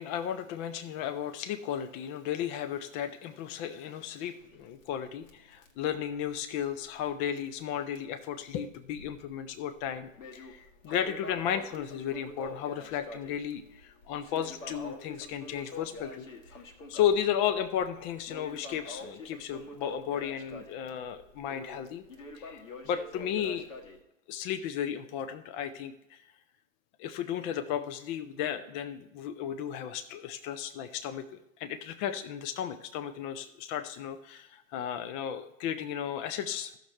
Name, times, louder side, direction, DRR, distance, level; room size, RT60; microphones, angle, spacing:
voice 1, 0.0-16.3 16.9-22.0 22.4-23.7 24.3-26.2 27.0-36.7, left 9 dB, 30° left, 10 dB, 0.5 m, -34 dB
Crackle, 4.4-7.1 7.4-7.5 8.0-8.1 8.7-9.3 9.7-24.0, left 2 dB, 70° left, 1.7 m, -46 dB
14.5 x 6.5 x 3.2 m, 0.85 s
figure-of-eight pair, 100°, 40 cm